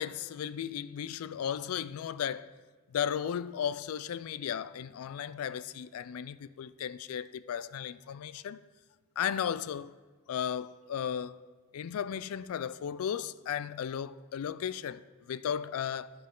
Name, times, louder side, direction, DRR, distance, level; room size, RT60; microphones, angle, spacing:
voice 1, 0.0-2.5 2.9-8.6 9.2-9.9 10.3-11.4 11.7-15.0 15.3-16.1, left 8 dB, 70° left, 0.3 m, -35 dB
10.5 x 7.4 x 3.8 m
head